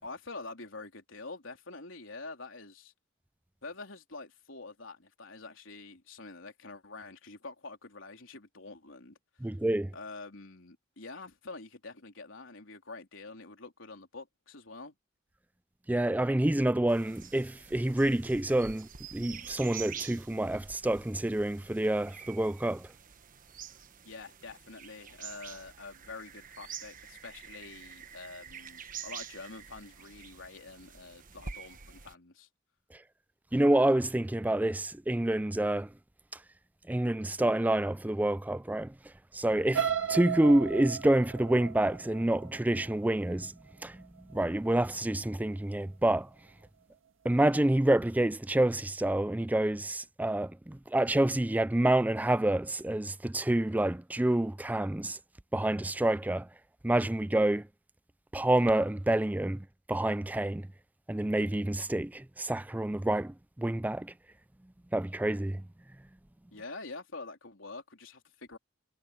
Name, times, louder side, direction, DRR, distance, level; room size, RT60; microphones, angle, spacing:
voice 1, 0.0-2.9 3.6-9.2 9.9-15.0 24.0-32.5 66.5-68.6, left 3 dB, 85° left, 3.6 m, -46 dB
voice 2, 9.4-9.9 15.9-22.9 33.5-35.9 36.9-38.9 39.3-43.5 43.8-46.3 47.2-55.2 55.5-56.5 56.8-57.7 58.3-60.7 61.1-64.1 64.9-65.7, right 1 dB, 10° right, 0.4 m, -28 dB
sound 1, 16.9-32.1, right 7 dB, 45° right, 1.2 m, -47 dB
sound 2, 39.7-43.7 44.2-44.5 44.8-44.9, right 8 dB, 85° right, 1.8 m, -35 dB
head